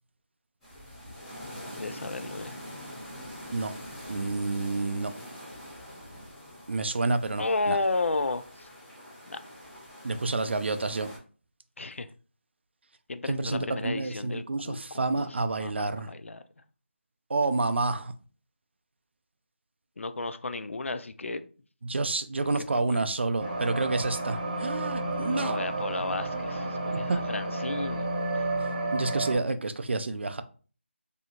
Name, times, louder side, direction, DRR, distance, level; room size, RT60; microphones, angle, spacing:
sound 1, 0.6-11.2, equal, 5° left, 0.6 m, -44 dB
voice 1, 1.8-2.6 7.4-8.7 9.2-9.4 11.8-12.1 13.1-16.4 20.0-21.4 22.7-23.0 25.3-28.1 28.3-28.5, left 3 dB, 75° left, 0.4 m, -33 dB
voice 2, 4.1-5.1 6.7-7.8 10.0-11.1 13.3-16.1 17.3-18.1 21.8-25.6 26.9-27.2 28.9-30.4, right 3 dB, 60° right, 0.4 m, -29 dB
sound 2, 23.4-29.4, right 2 dB, 35° right, 0.9 m, -31 dB
2.7 x 2.3 x 2.8 m
figure-of-eight pair, 165°, 7 cm